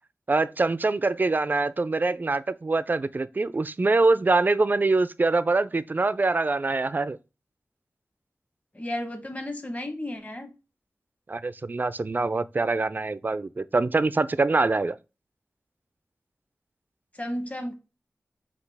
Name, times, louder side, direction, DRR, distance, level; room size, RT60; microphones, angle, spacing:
voice 1, 0.3-7.2 11.3-15.0, right 3 dB, 35° right, 0.3 m, -24 dB
voice 2, 8.7-10.5 17.1-17.8, left 1 dB, 30° left, 1.0 m, -33 dB
5.9 x 2.4 x 3.4 m
wide cardioid pair, 65°, 5 cm